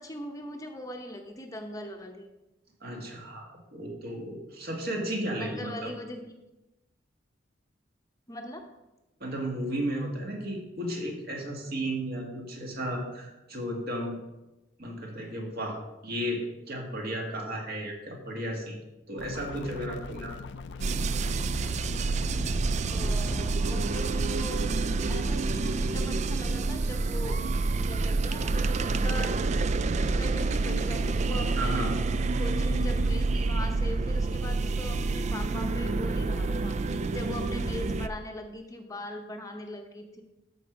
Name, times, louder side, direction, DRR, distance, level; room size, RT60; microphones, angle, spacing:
voice 1, 0.0-2.3 5.4-6.2 8.3-8.7 22.9-24.7 25.1-27.5 27.9-29.3 30.0-31.9 32.4-40.2, left 1 dB, 20° left, 4 dB, 0.8 m, -40 dB
voice 2, 2.8-5.9 9.2-14.2 14.8-18.8 19.1-20.4 31.5-31.9, right 1 dB, 55° right, 0 dB, 2.0 m, -34 dB
sound 1, 19.2-23.6, left 4 dB, 65° left, 0.5 m, -41 dB
sound 2, 20.8-38.1, right 3 dB, 40° right, 0.3 m, -28 dB
13.0 x 4.7 x 5.2 m, 1.0 s
head